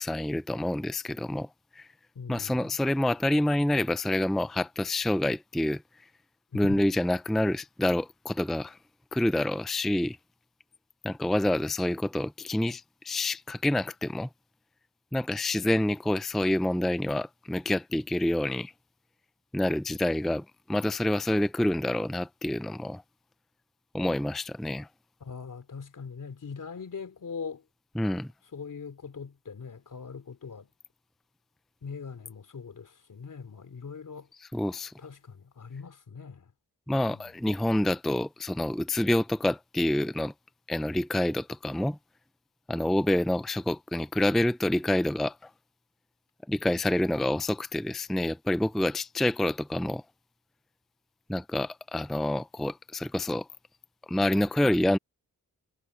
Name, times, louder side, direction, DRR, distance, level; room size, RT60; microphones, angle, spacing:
voice 1, 0.0-1.5 1.8-1.9 2.3-5.8 6.5-8.8 9.1-10.2 11.0-14.3 15.1-18.7 19.5-23.0 23.9-24.9 28.0-28.3 34.5-34.9 36.9-40.3 40.7-42.0 42.7-45.5 46.5-50.0 51.3-53.5 54.1-55.0, left 1 dB, ahead, 0.4 m, -27 dB
voice 2, 2.1-2.8 6.5-6.8 25.2-27.6 28.5-30.7 31.8-34.3 35.0-36.5 37.1-37.3, left 5 dB, 65° left, 3.2 m, -41 dB
wide cardioid pair, 125°, 33 cm